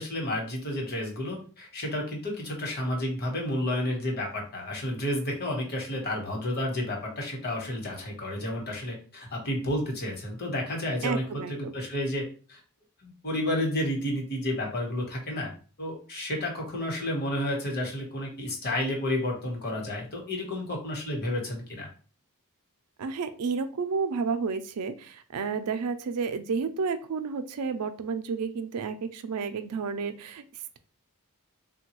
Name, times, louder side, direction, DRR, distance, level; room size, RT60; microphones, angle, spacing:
voice 1, 0.0-11.2 11.5-12.2 12.5-12.6 13.0-15.5 15.8-21.9, left 1 dB, 45° left, 0 dB, 1.1 m, -31 dB
voice 2, 11.0-11.7 23.0-30.4, right 5 dB, 85° right, 10 dB, 0.4 m, -31 dB
3.5 x 2.2 x 2.9 m, 0.38 s
head